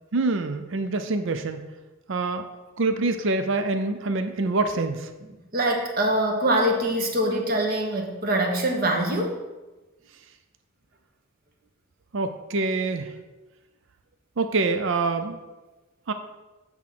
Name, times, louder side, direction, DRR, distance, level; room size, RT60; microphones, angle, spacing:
voice 1, 0.1-1.7 2.1-2.5 2.8-5.1 12.1-13.1 14.4-15.4 16.1-16.2, right 3 dB, 60° right, 8 dB, 0.5 m, -25 dB
voice 2, 5.5-9.4, right 1 dB, 45° right, 2 dB, 1.1 m, -24 dB
7.9 x 3.6 x 5.8 m, 1.1 s
head